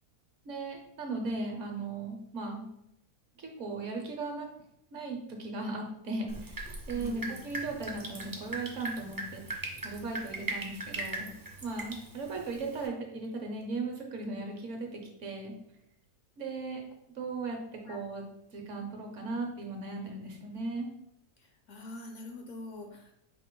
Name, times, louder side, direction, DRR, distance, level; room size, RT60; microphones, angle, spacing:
voice 1, 0.4-2.7 3.4-4.5 4.9-6.6 6.9-11.3 11.6-15.5 16.4-16.8 17.1-18.2 18.5-20.9, right 3 dB, 60° right, 2 dB, 1.0 m, -37 dB
Drip, 6.3-12.9, right 2 dB, 25° right, 0.4 m, -40 dB
voice 2, 6.9-7.4 17.9-18.0 21.4-23.1, left 2 dB, 65° left, 3 dB, 0.8 m, -44 dB
4.9 x 2.9 x 3.7 m, 0.79 s
omnidirectional pair, 1.6 m